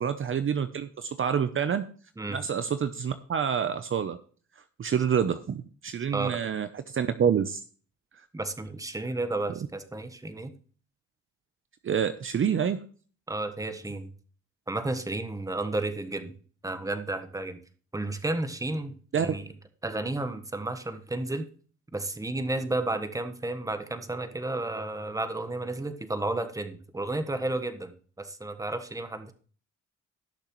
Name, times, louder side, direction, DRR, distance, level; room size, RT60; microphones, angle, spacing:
voice 1, 0.0-1.9 2.3-4.2 4.8-7.6 11.8-12.8 19.1-19.3, right 7 dB, 45° right, 10 dB, 0.8 m, -27 dB
voice 2, 8.3-10.5 13.3-14.1 14.7-16.3 16.6-17.6 17.9-19.6 19.8-21.5 21.9-29.3, right 2 dB, 10° right, 9 dB, 1.3 m, -32 dB
18.0 x 6.6 x 3.1 m, 0.41 s
cardioid pair, 90°, 30 cm